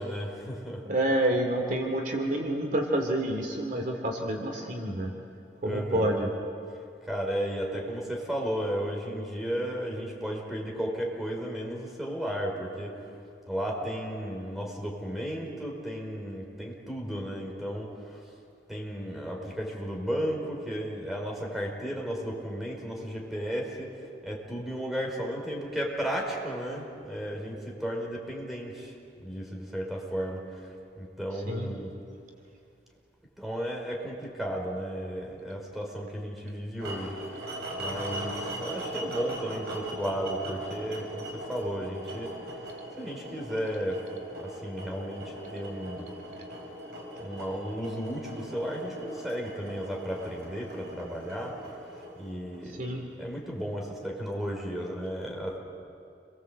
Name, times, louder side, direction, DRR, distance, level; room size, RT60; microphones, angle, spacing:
voice 1, 0.0-0.8 5.6-6.2 7.0-13.1 13.5-18.2 18.7-31.9 33.4-37.5 37.8-42.3 43.0-44.0 44.4-46.1 47.2-51.8 52.1-52.9 53.2-55.6, equal, ahead, 0 dB, 5.0 m, -34 dB
voice 2, 0.9-5.1 5.6-6.3 31.5-31.7 52.8-53.0, right 1 dB, 50° right, 2 dB, 3.0 m, -28 dB
sound 1, 36.8-52.9, right 1 dB, 65° right, 5.7 m, -40 dB
29.0 x 22.5 x 8.1 m, 2.4 s
head